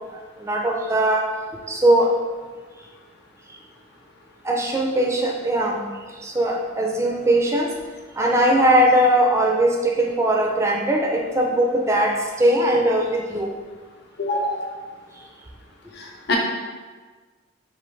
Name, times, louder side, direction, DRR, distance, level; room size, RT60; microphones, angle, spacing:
voice 1, 0.4-1.3 1.7-2.1 4.4-5.8 6.2-7.7 8.2-13.5, right 1 dB, 15° right, 0 dB, 0.4 m, -20 dB
voice 2, 14.2-14.6 16.0-16.4, left 2 dB, 55° left, -1 dB, 0.7 m, -25 dB
5.0 x 2.6 x 3.1 m, 1.4 s
head